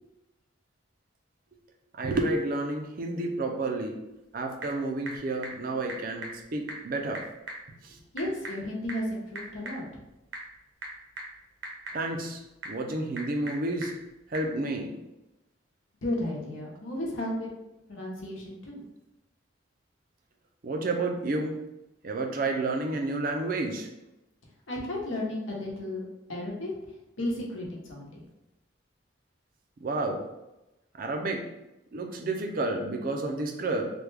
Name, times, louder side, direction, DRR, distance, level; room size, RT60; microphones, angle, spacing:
voice 1, 1.9-3.9 4.3-7.2 7.8-8.0 11.9-13.9 14.3-14.9 20.6-21.6 22.0-23.9 29.8-30.2 30.9-31.4 31.9-33.9, right 2 dB, 45° right, 3 dB, 0.4 m, -30 dB
Typing / Telephone, 4.0-14.5, right 2 dB, 75° right, 0.8 m, -44 dB
voice 2, 8.1-9.8 16.0-17.5 17.9-18.8 24.7-26.0 26.3-26.7 27.2-28.2, left 1 dB, 85° left, -2 dB, 0.9 m, -33 dB
3.4 x 2.2 x 3.2 m, 0.95 s
head